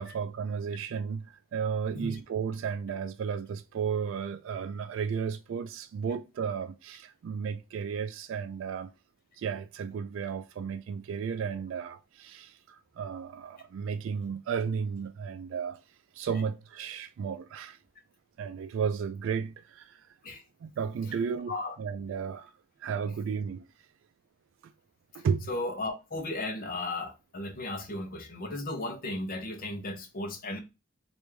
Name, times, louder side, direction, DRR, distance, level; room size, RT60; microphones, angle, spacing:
voice 1, 0.0-8.9 9.4-15.8 16.1-17.8 18.4-20.0 20.6-22.5 22.8-23.7 25.1-25.5, right 6 dB, 70° right, 0.3 m, -33 dB
voice 2, 25.1-30.6, left 2 dB, 45° left, 0.7 m, -35 dB
3.4 x 2.5 x 3.1 m
head